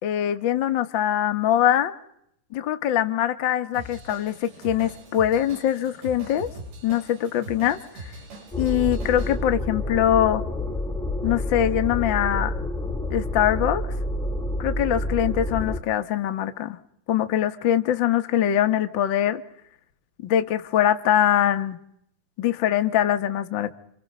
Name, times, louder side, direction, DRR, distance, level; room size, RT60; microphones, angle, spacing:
voice 1, 0.0-1.9 2.5-6.5 6.8-8.1 8.6-10.4 11.2-12.5 13.1-13.8 14.6-16.8 17.1-19.4 20.2-21.8 22.4-23.7, left 11 dB, 85° left, 1.0 m, -23 dB
Drum kit / Drum, 3.7-9.4, right 2 dB, 75° right, 9.1 m, -41 dB
sound 1, 8.5-15.8, left 1 dB, ahead, 0.9 m, -28 dB
29.5 x 26.5 x 5.5 m
omnidirectional pair, 4.4 m